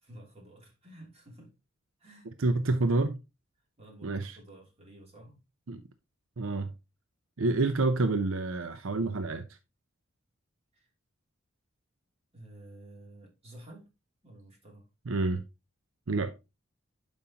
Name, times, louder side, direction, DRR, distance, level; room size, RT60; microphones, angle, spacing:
voice 1, 0.0-1.5 2.0-2.3 3.8-5.4 10.7-10.9 12.3-13.9 14.2-14.8, right 1 dB, 30° right, 3.0 m, -51 dB
voice 2, 2.4-3.2 4.0-4.4 5.7-5.8 6.4-6.7 7.4-9.5 15.1-15.4 16.1-16.3, right 2 dB, 75° right, 0.7 m, -28 dB
10.5 x 5.4 x 2.9 m
head